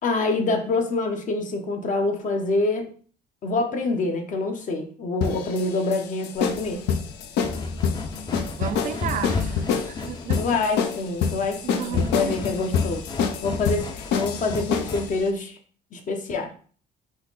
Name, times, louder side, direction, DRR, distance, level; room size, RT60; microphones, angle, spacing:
voice 1, 0.0-2.9 3.4-6.9 10.3-13.0 13.4-15.6 15.9-16.5, left 3 dB, 50° left, 1.0 m, -26 dB
sound 1, 5.2-15.1, left 6 dB, 80° left, 0.6 m, -27 dB
sound 2, 6.4-15.3, left 4 dB, 25° left, 0.5 m, -33 dB
voice 2, 8.5-10.6 11.6-12.4, right 10 dB, 50° right, 0.4 m, -34 dB
4.1 x 3.1 x 4.0 m
cardioid pair, 110°, 17 cm